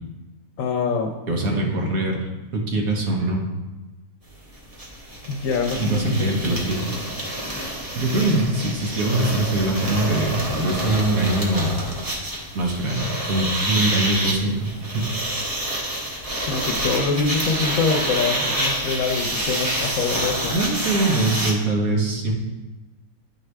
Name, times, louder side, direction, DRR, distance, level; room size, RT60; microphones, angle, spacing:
voice 1, 0.6-1.7 5.3-6.9 16.5-20.5, left 4 dB, 70° left, 3 dB, 1.0 m, -25 dB
voice 2, 1.3-2.2 2.5-3.4 5.8-7.0 7.9-11.7 12.5-15.1 20.5-22.3, right 2 dB, 70° right, 0 dB, 1.6 m, -23 dB
sound 1, 4.3-4.4 4.5-21.5, right 1 dB, 25° right, 1.3 m, -28 dB
10.0 x 4.7 x 3.3 m, 1.1 s
omnidirectional pair, 1.5 m